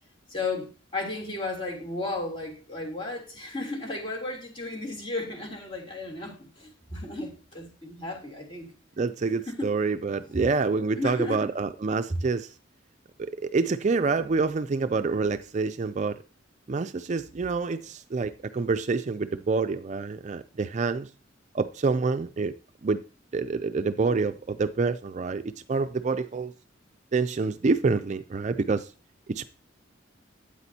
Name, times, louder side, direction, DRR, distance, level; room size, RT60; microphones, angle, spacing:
voice 1, 0.3-8.7 9.4-9.7 10.2-10.4 11.0-11.5, left 2 dB, 25° left, 3.2 m, -34 dB
voice 2, 9.0-12.5 13.2-16.2 16.7-21.1 21.5-22.5 22.8-23.0 23.3-26.5 27.1-28.9 29.3-29.4, right 4 dB, 35° right, 0.4 m, -27 dB
12.5 x 8.7 x 2.8 m
head